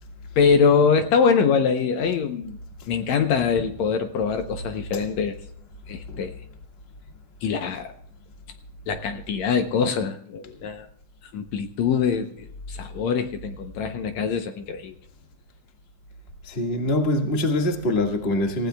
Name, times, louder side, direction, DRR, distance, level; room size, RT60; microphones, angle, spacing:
voice 1, 0.4-2.6 2.9-5.4 5.9-6.4 7.4-7.9 8.9-10.9 11.3-14.9, left 6 dB, 70° left, 2.0 m, -23 dB
voice 2, 16.4-18.7, left 1 dB, 25° left, 1.4 m, -24 dB
28.5 x 15.5 x 2.3 m
omnidirectional pair, 3.5 m